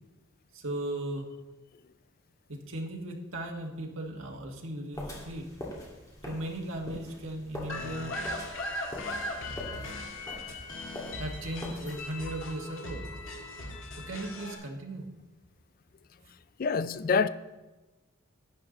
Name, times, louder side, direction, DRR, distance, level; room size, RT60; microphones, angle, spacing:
voice 1, 0.5-1.3 2.5-5.5 6.2-8.2 11.2-13.1 13.9-15.1, right 1 dB, 65° right, 1.4 m, -37 dB
sound 1, 4.9-12.4, left 1 dB, 15° left, 1.8 m, -44 dB
sound 2, 7.7-14.6, left 1 dB, 70° left, 1.6 m, -38 dB
voice 2, 16.6-17.3, left 5 dB, 40° left, 0.3 m, -26 dB
11.5 x 9.5 x 3.9 m
head